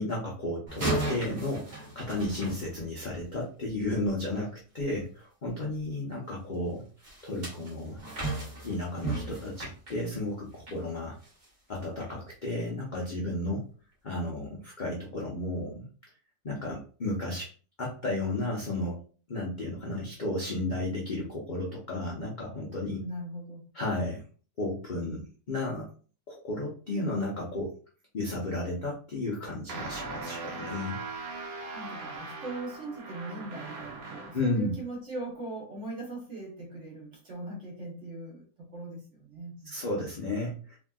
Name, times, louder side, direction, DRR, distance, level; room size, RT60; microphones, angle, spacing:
voice 1, 0.0-6.8 7.2-8.0 8.6-11.2 11.7-13.6 14.0-15.9 16.4-17.5 17.8-19.0 19.3-23.0 23.7-24.2 24.6-25.9 26.3-27.7 28.1-31.0 34.3-34.7 39.7-40.8, left 2 dB, 60° left, -4 dB, 0.4 m, -33 dB
sound 1, 0.7-3.3 7.0-10.8 11.2-11.5 12.0-12.1, right 2 dB, 30° right, 1.0 m, -35 dB
voice 2, 23.0-23.6 31.7-39.7, right 2 dB, 50° right, -2 dB, 1.2 m, -40 dB
sound 2, 29.7-34.5, right 3 dB, 85° right, 1.2 m, -39 dB
3.0 x 2.6 x 2.3 m, 0.39 s
omnidirectional pair, 1.8 m